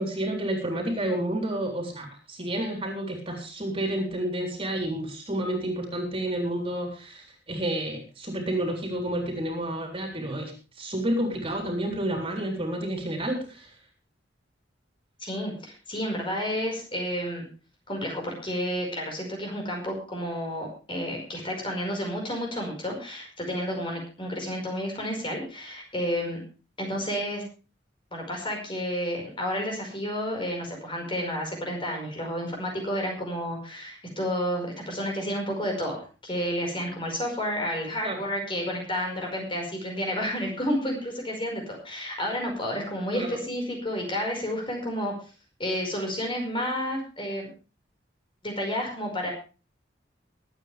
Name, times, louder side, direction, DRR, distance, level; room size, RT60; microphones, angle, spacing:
voice 1, 0.0-13.7 38.0-38.2 43.1-43.3, right 1 dB, 30° right, 3 dB, 3.8 m, -30 dB
voice 2, 15.2-17.4 17.9-26.4 26.8-27.4 28.1-45.1 45.6-47.5 48.4-49.3, equal, 25° left, 1 dB, 5.2 m, -31 dB
22.5 x 9.1 x 3.4 m, 0.34 s
head